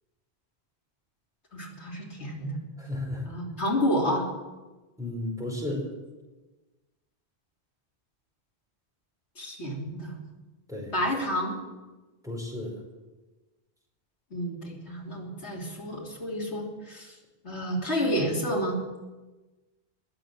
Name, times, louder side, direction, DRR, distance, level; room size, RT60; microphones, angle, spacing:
voice 1, 1.5-2.6 3.2-4.2 9.4-10.1 10.9-11.6 14.3-17.2 17.4-19.0, equal, 85° left, -2 dB, 3.4 m, -30 dB
voice 2, 2.8-3.2 5.0-5.9 10.7-10.9 12.2-12.8, left 1 dB, 5° right, -2 dB, 5.2 m, -33 dB
21.0 x 7.7 x 8.7 m, 1.2 s
omnidirectional pair, 1.1 m